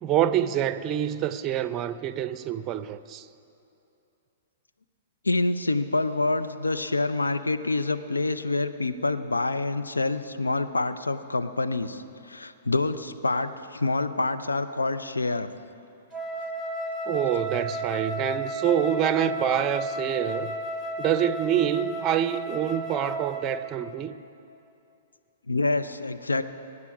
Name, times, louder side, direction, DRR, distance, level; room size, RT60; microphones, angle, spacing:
voice 1, 0.0-3.2 17.1-20.5 21.0-24.1, right 10 dB, 30° right, 0.5 m, -26 dB
voice 2, 5.2-15.5 25.5-26.4, left 2 dB, 90° left, 0.6 m, -27 dB
Wind instrument woodwind instrument, 16.1-23.8, equal, 5° left, 1.5 m, -33 dB
22.5 x 9.7 x 4.8 m
figure-of-eight pair, 115°, 0 cm